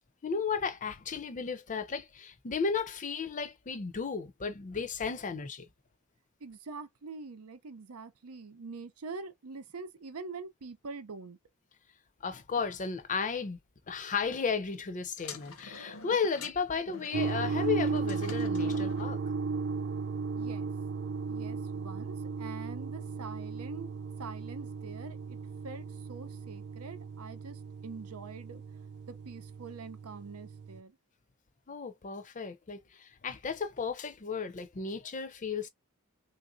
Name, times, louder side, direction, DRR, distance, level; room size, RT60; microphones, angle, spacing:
voice 1, 0.2-5.6 12.2-13.6 13.9-19.2 31.7-35.7, left 5 dB, 35° left, 0.6 m, -34 dB
voice 2, 6.4-11.4 20.4-20.7 21.3-23.9 24.2-25.4 25.6-28.6 29.1-31.0, right 4 dB, 85° right, 0.7 m, -44 dB
sound 1, 15.2-19.1, left 4 dB, 70° left, 0.8 m, -47 dB
sound 2, 17.1-30.8, right 4 dB, 50° right, 0.3 m, -35 dB
3.4 x 2.6 x 2.5 m
head